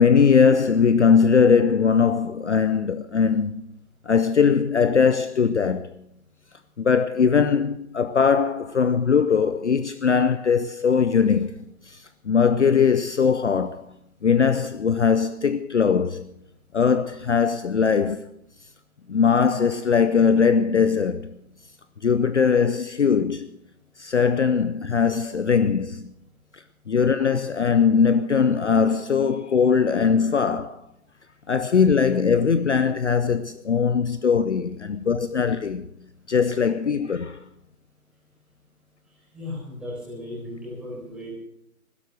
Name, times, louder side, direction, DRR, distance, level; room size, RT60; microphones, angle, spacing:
voice 1, 0.0-3.7 4.1-5.9 6.8-11.5 11.9-13.8 14.2-16.3 16.7-18.2 19.1-21.3 22.0-23.5 24.0-26.1 26.9-30.8 31.5-35.9 36.3-37.4, left 6 dB, 50° left, 0.7 m, -20 dB
voice 2, 39.3-41.3, left 1 dB, ahead, 4.7 m, -36 dB
16.0 x 12.5 x 6.5 m
figure-of-eight pair, 150°, 44 cm